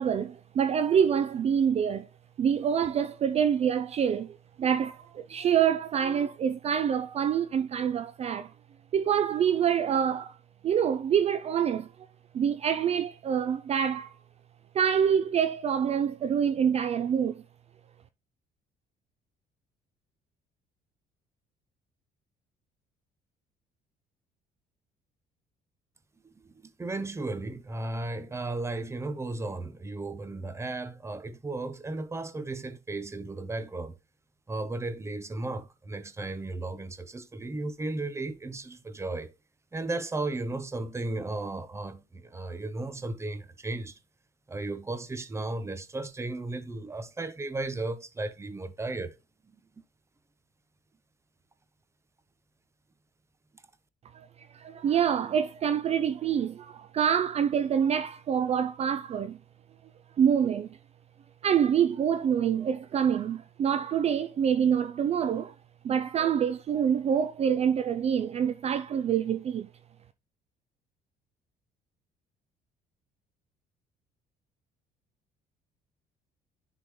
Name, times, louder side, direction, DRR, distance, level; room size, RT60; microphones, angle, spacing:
voice 1, 0.0-2.1 2.4-8.5 8.9-10.4 10.6-11.9 12.3-14.2 14.7-17.4 54.1-59.4 60.2-60.8 61.4-65.5 65.8-69.7, right 8 dB, 40° right, 0.4 m, -26 dB
voice 2, 26.4-33.9 34.5-39.3 39.7-44.0 44.5-49.2, right 2 dB, 15° right, 0.8 m, -35 dB
10.0 x 3.7 x 3.1 m
cardioid pair, 110°, 17 cm